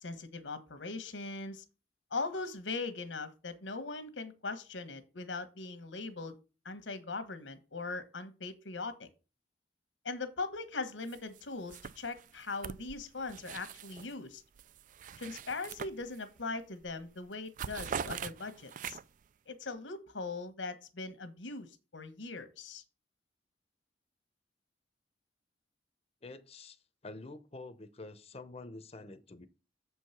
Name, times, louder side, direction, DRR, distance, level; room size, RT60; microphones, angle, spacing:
voice 1, 0.0-1.6 2.1-6.3 6.6-9.1 10.0-14.4 15.2-19.0 19.5-22.8, left 3 dB, 90° left, 1.2 m, -40 dB
sound 1, 11.1-11.4 11.7-14.1 14.5-16.4 16.8-17.0 17.3-19.3, right 7 dB, 45° right, 0.3 m, -43 dB
voice 2, 26.2-29.5, left 2 dB, 35° left, 0.7 m, -48 dB
7.1 x 4.7 x 5.7 m
head